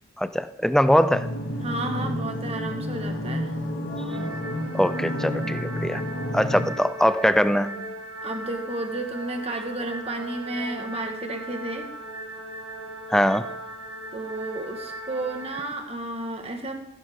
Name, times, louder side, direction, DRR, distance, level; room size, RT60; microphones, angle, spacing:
voice 1, 0.2-1.3 4.7-6.0 6.3-7.7 13.1-13.5, equal, ahead, 12 dB, 0.4 m, -22 dB
sound 1, 1.1-6.7, left 1 dB, 70° left, 1.7 m, -30 dB
sound 2, 1.6-13.8, left 1 dB, 55° left, 2.5 m, -45 dB
voice 2, 1.6-3.5 8.2-11.9 14.1-16.7, right 2 dB, 30° right, 4 dB, 1.5 m, -32 dB
sound 3, 4.1-15.6, right 2 dB, 65° right, 2.3 m, -39 dB
15.0 x 11.5 x 3.6 m, 0.87 s
head